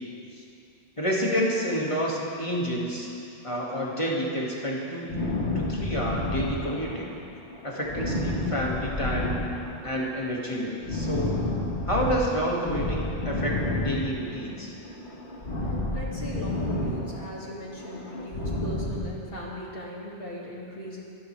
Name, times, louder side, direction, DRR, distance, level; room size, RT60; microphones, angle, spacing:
voice 1, 1.0-3.1 3.4-5.2 5.5-7.1 7.6-9.4 9.8-11.4 11.9-13.5 13.8-14.7, equal, 30° left, -4 dB, 2.4 m, -29 dB
sound 1, 5.1-7.2 7.5-10.0 10.3-12.2 12.6-14.6 14.8-17.4 17.7-19.1, left 1 dB, 90° left, 2.0 m, -30 dB
voice 2, 15.9-21.0, left 1 dB, 60° left, -4 dB, 2.6 m, -38 dB
25.5 x 11.0 x 3.5 m, 2.7 s
omnidirectional pair, 1.1 m